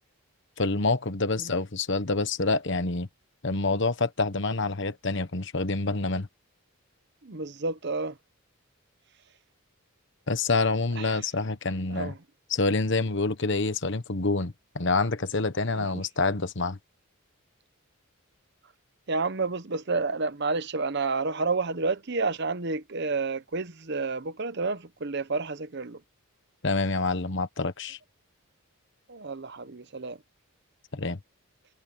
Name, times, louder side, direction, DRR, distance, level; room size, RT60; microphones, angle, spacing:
voice 1, 0.6-3.1 3.4-6.3 10.3-12.1 12.5-16.8 26.6-28.0 30.9-31.2, left 3 dB, 55° left, 1.2 m, -27 dB
voice 2, 7.2-8.1 11.0-11.1 11.9-12.1 15.7-15.9 19.1-26.0 29.1-30.2, right 3 dB, 50° right, 0.9 m, -30 dB
head